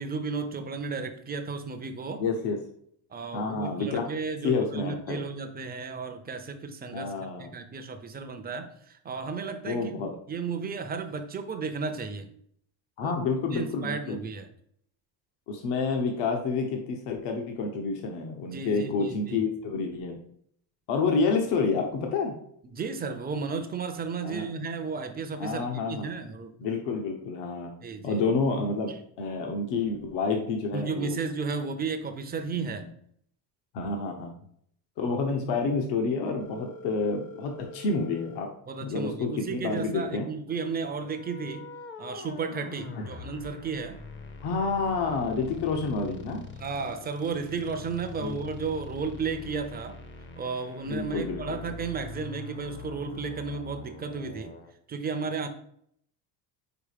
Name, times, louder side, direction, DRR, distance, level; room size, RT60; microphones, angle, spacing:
voice 1, 0.0-2.2 3.1-7.1 7.4-9.9 10.3-12.3 13.0-13.2 13.5-14.5 18.5-19.4 22.6-26.5 27.8-28.2 28.9-29.0 30.7-32.9 38.7-41.7 42.0-44.0 46.6-50.0 50.4-54.5 54.9-55.5, right 4 dB, 20° right, 8 dB, 0.6 m, -33 dB
voice 2, 2.2-2.6 3.3-4.1 4.4-5.2 6.9-7.5 9.7-10.2 13.0-14.2 15.5-20.2 20.9-22.3 24.2-24.5 25.4-26.1 26.6-27.7 28.0-31.2 32.5-32.7 33.7-34.3 35.0-38.5 38.8-40.3 43.0-43.1 44.4-46.5 48.2-48.4 50.9-51.7, left 4 dB, 70° left, 3 dB, 1.2 m, -29 dB
Telephone, 36.4-38.4, left 1 dB, 85° left, 1.7 m, -45 dB
sound 1, 40.8-54.7, left 4 dB, 25° left, 0.7 m, -43 dB
5.0 x 4.9 x 5.0 m, 0.67 s
cardioid pair, 155°, 43 cm